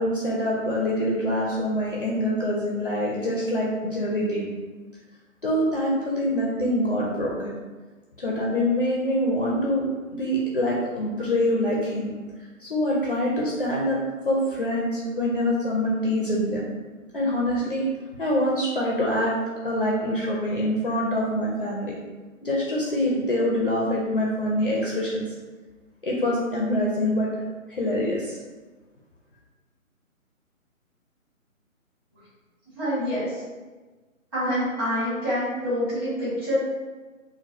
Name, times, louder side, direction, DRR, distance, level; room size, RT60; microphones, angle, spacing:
voice 1, 0.0-4.5 5.4-7.5 8.2-9.8 10.1-12.1 12.6-14.0 14.2-16.6 17.1-17.9 18.2-19.3 19.6-21.9 22.4-25.3 26.0-27.4 27.7-28.4, left 1 dB, 45° left, -4 dB, 0.4 m, -25 dB
voice 2, 32.7-33.4 34.3-36.6, equal, 15° right, -13 dB, 1.2 m, -26 dB
3.0 x 2.0 x 2.5 m, 1.3 s
figure-of-eight pair, 150°, 41 cm